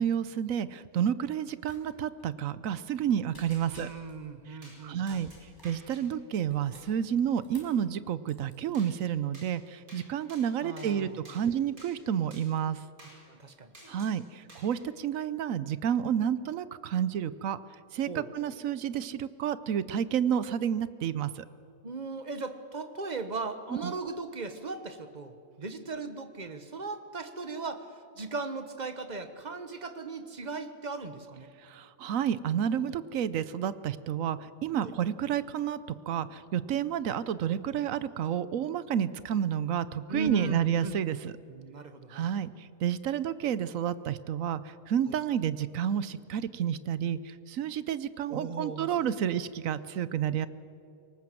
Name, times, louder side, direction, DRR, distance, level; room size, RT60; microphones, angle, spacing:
voice 1, 0.0-3.9 4.5-5.3 5.6-12.8 13.9-17.6 17.9-21.4 23.8-23.9 31.6-35.8 36.1-41.3 42.1-50.5, right 9 dB, 70° right, 16 dB, 1.1 m, -30 dB
sound 1, 1.6-2.2 2.7-3.0 3.3-4.2 5.1-5.8 6.3-7.8 8.2-8.5, left 1 dB, 15° left, 5.1 m, -54 dB
voice 2, 3.7-5.2 10.6-11.2 13.3-13.7 18.1-18.3 21.8-31.5 34.8-34.9 40.1-40.9 41.5-42.3 45.1-45.2 48.3-49.0, right 3 dB, 35° right, 9 dB, 1.3 m, -38 dB
sound 2, 4.6-4.8 5.1-6.0 8.7-8.9 9.3-9.5 9.9-10.0 10.3-10.9 11.2-11.4 11.8-11.9 12.3-12.4 13.0-13.2 13.7-14.1 14.5-14.8, right 1 dB, 90° right, 5.7 m, -52 dB
23.0 x 19.0 x 7.6 m, 2.5 s
omnidirectional pair, 1.5 m